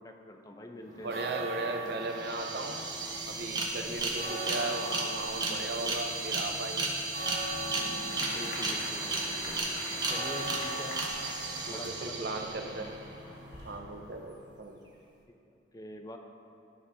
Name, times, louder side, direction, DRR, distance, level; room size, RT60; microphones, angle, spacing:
voice 1, 0.0-1.4 3.9-4.2 8.2-9.6 10.1-11.0 11.7-13.0 15.3-16.2, left 1 dB, 20° left, 3 dB, 0.6 m, -45 dB
sound 1, 0.9-14.4, right 1 dB, 85° right, 2.2 m, -42 dB
voice 2, 1.0-2.8 3.3-6.9 11.7-12.9 13.6-14.8, right 3 dB, 65° right, 4 dB, 0.7 m, -37 dB
sound 2, 1.9-2.0 2.1-12.9, right 3 dB, 25° right, 1.0 m, -34 dB
sound 3, 8.1-13.8, left 1 dB, 80° left, 1.6 m, -45 dB
12.5 x 5.5 x 3.5 m, 2.6 s
head